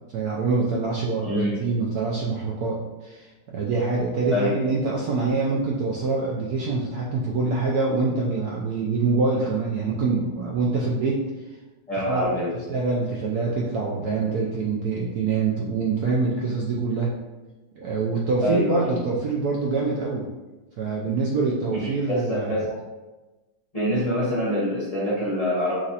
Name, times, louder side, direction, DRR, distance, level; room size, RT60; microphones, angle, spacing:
voice 1, 0.1-11.2 12.1-12.4 12.7-17.1 17.8-20.2 20.8-22.6, right 4 dB, 70° right, -3 dB, 0.9 m, -25 dB
voice 2, 1.2-1.5 4.3-4.6 11.9-12.5 18.4-18.9 21.8-22.8 23.7-25.8, left 1 dB, 30° left, -8 dB, 0.7 m, -25 dB
6.0 x 2.5 x 2.8 m, 1.2 s
omnidirectional pair, 2.1 m